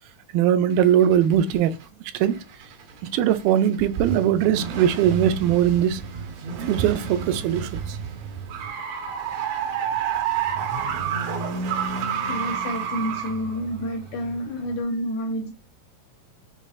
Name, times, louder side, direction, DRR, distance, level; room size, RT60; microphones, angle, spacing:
voice 1, 0.3-1.7 2.1-2.4 3.1-6.0 6.7-8.0, right 10 dB, 90° right, 2.3 m, -20 dB
sound 1, 0.7-1.8 2.2-14.8, right 7 dB, 70° right, 1.9 m, -30 dB
voice 2, 12.3-15.5, equal, 75° left, 1.8 m, -29 dB
6.8 x 3.1 x 2.3 m
omnidirectional pair, 4.0 m